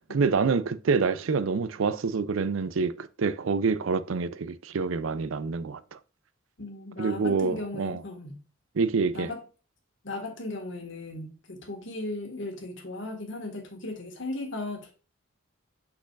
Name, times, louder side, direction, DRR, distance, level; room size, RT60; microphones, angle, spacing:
voice 1, 0.1-5.8 7.0-8.0 8.8-9.3, right 4 dB, 80° right, 0.5 m, -27 dB
voice 2, 6.6-8.4 9.1-9.4 10.0-14.9, left 2 dB, 65° left, 1.8 m, -37 dB
6.3 x 6.0 x 2.5 m
head